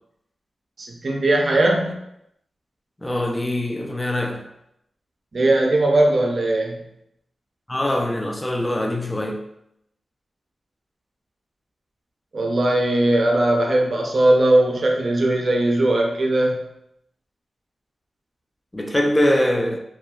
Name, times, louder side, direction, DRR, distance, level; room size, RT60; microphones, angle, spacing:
voice 1, 0.8-1.9 5.3-6.9 12.3-16.6, right 1 dB, 55° right, 1 dB, 0.5 m, -19 dB
voice 2, 3.0-4.5 7.7-9.4 18.7-19.8, left 1 dB, 20° left, 2 dB, 0.3 m, -23 dB
2.7 x 2.3 x 2.3 m, 0.79 s
cardioid pair, 65°, 0 cm